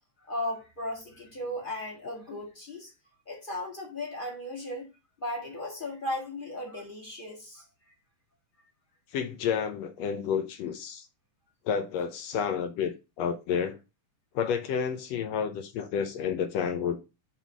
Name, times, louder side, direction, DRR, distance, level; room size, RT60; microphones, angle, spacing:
voice 1, 0.2-2.9 3.3-4.9 5.2-7.6, left 1 dB, 25° left, 1.2 m, -36 dB
voice 2, 9.1-11.1 11.6-13.8 14.3-17.0, left 7 dB, 75° left, 1.7 m, -30 dB
5.8 x 3.6 x 6.0 m
omnidirectional pair, 3.5 m